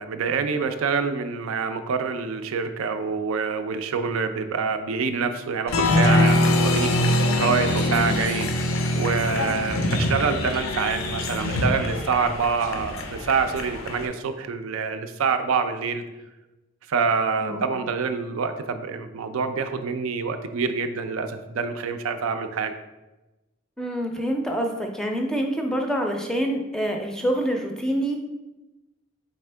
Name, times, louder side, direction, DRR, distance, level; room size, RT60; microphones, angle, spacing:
voice 1, 0.0-16.0 16.9-22.7, right 5 dB, 85° right, 8 dB, 0.4 m, -26 dB
Applause, 5.7-14.1, left 1 dB, 80° left, 0.5 m, -23 dB
voice 2, 7.9-8.2 17.4-17.6 23.8-28.2, equal, 5° left, 2 dB, 0.4 m, -26 dB
4.2 x 3.6 x 3.3 m, 1.0 s
head